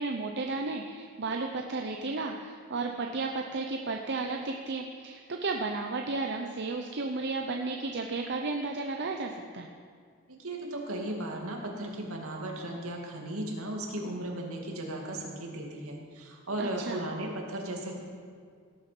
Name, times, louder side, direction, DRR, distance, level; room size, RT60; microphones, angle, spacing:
voice 1, 0.0-9.7 16.6-17.0, right 3 dB, 50° right, 3 dB, 0.8 m, -33 dB
voice 2, 10.3-17.9, right 1 dB, 70° right, 0 dB, 2.4 m, -36 dB
18.0 x 8.6 x 6.0 m, 2.1 s
head